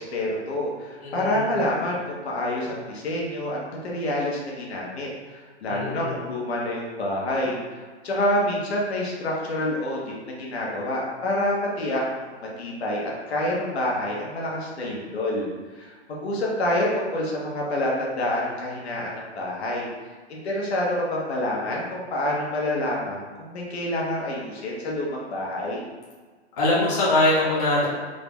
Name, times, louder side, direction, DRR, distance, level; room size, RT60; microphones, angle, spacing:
voice 1, 0.0-15.5 15.8-19.9 20.3-25.8, left 1 dB, 65° left, -3 dB, 1.2 m, -27 dB
voice 2, 1.0-1.4 5.7-6.1 26.6-27.9, left 2 dB, 35° left, -7 dB, 0.8 m, -22 dB
3.8 x 2.3 x 3.5 m, 1.5 s
hypercardioid pair, 165°, 34 cm